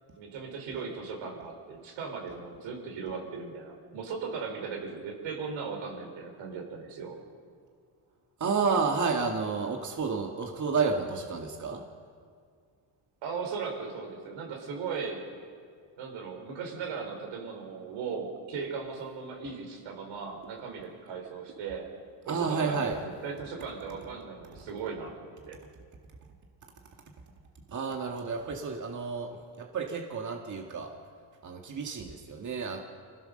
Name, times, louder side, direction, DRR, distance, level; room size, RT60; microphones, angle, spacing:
voice 1, 0.2-7.2 13.2-15.2 16.0-21.9 22.3-25.6, right 5 dB, 85° right, 1 dB, 4.8 m, -38 dB
voice 2, 8.4-11.8 22.3-23.0 27.7-30.9 31.4-32.8, right 5 dB, 40° right, 2 dB, 2.0 m, -30 dB
25.5 x 15.5 x 6.6 m, 2.2 s
cardioid pair, 100°, 45 cm